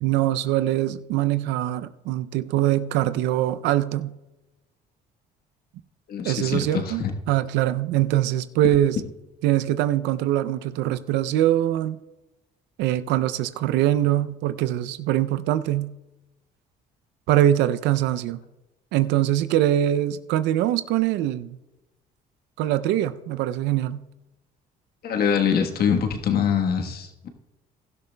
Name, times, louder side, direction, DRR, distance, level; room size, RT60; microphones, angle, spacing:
voice 1, 0.0-4.1 6.2-9.0 9.4-12.0 12.8-15.9 17.3-18.4 18.9-21.6 22.6-24.0, right 13 dB, 80° right, 0.5 m, -23 dB
voice 2, 6.1-7.1 25.0-27.3, left 7 dB, 60° left, 1.3 m, -24 dB
16.5 x 12.0 x 2.2 m
supercardioid pair, 70°, 18 cm